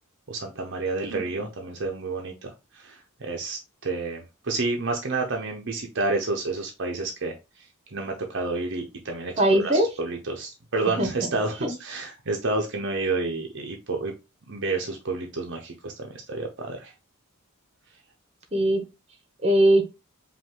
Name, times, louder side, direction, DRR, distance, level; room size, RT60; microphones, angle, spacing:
voice 1, 0.3-7.4 7.9-14.1 14.5-16.9, right 3 dB, 55° right, 2 dB, 0.8 m, -30 dB
voice 2, 1.1-1.5 9.4-9.9 11.0-11.1 11.6-11.7 18.5-18.8 19.4-19.8, right 1 dB, 30° right, 5 dB, 1.1 m, -21 dB
5.3 x 2.6 x 3.6 m, 0.25 s
head